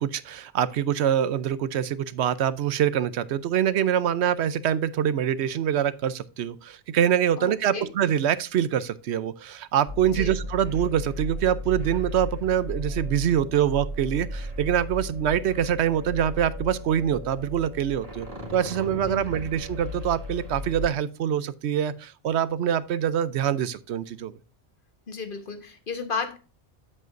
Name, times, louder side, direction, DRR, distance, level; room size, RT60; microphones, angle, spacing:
voice 1, 0.0-24.3, right 9 dB, 85° right, 0.9 m, -25 dB
voice 2, 7.4-7.9 10.0-10.3 18.9-19.3 25.1-26.4, left 5 dB, 55° left, 1.3 m, -34 dB
sound 1, 9.9-20.9, left 1 dB, 55° right, 2.3 m, -35 dB
9.2 x 7.7 x 2.6 m
omnidirectional pair, 1.1 m